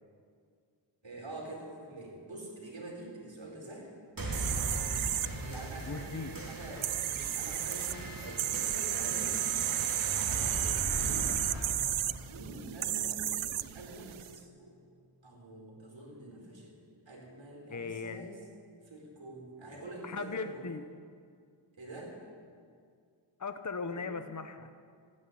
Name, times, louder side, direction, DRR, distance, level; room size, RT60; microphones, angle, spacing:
voice 1, 1.0-3.9 5.4-9.7 10.9-11.3 12.3-14.7 15.2-16.7 17.1-18.4 18.8-20.6 21.7-22.1 23.9-24.1, right 2 dB, 70° right, -1 dB, 4.5 m, -46 dB
sound 1, 4.2-13.2, right 1 dB, 45° right, 2.9 m, -39 dB
sound 2, 4.3-14.3, right 12 dB, 90° right, 0.5 m, -34 dB
voice 2, 5.9-6.4 10.5-11.8 17.7-18.3 20.0-20.9 23.4-24.7, left 4 dB, 40° left, 8 dB, 1.0 m, -39 dB
14.5 x 9.9 x 9.9 m, 2.1 s
wide cardioid pair, 65°, 47 cm